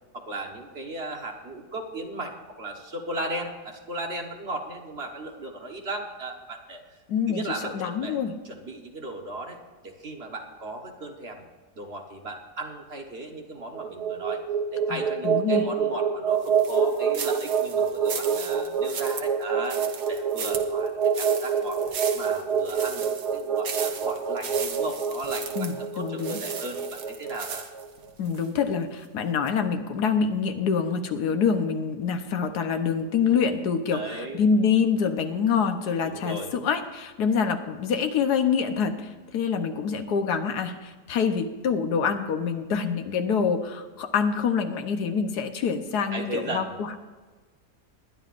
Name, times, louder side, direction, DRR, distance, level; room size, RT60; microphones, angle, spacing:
voice 1, 0.1-7.0 7.3-8.2 8.4-11.4 11.7-14.4 14.7-21.8 22.1-27.7 33.9-34.4 36.0-36.5 46.1-46.7, right 2 dB, 40° right, 2 dB, 1.4 m, -36 dB
voice 2, 7.1-8.3 14.9-15.7 25.6-26.4 28.2-47.0, left 6 dB, 75° left, 7 dB, 1.4 m, -26 dB
sound 1, 13.6-27.9, right 7 dB, 80° right, 1.7 m, -26 dB
sound 2, 16.4-28.5 28.9-29.1 29.5-29.6, right 6 dB, 65° right, 1.4 m, -37 dB
20.5 x 11.0 x 2.5 m, 1.4 s
omnidirectional pair, 1.7 m